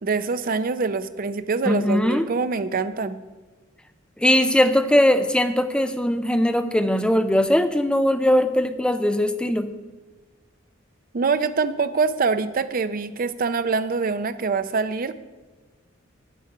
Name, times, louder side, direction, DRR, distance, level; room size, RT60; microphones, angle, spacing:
voice 1, 0.0-3.2 11.1-15.2, right 4 dB, 45° right, 12 dB, 0.5 m, -24 dB
voice 2, 1.7-2.3 4.2-9.7, left 1 dB, 5° left, 9 dB, 0.5 m, -20 dB
9.2 x 7.6 x 5.4 m, 1.3 s
head